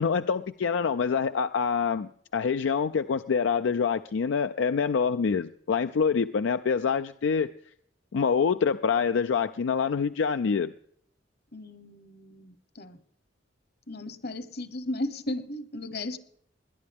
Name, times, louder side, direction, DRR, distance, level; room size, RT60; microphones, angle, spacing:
voice 1, 0.0-7.5 8.1-10.7, left 6 dB, 80° left, 10 dB, 0.4 m, -26 dB
voice 2, 11.5-13.0 13.9-16.2, left 1 dB, 55° left, 13 dB, 1.2 m, -35 dB
20.0 x 10.5 x 3.5 m, 0.63 s
head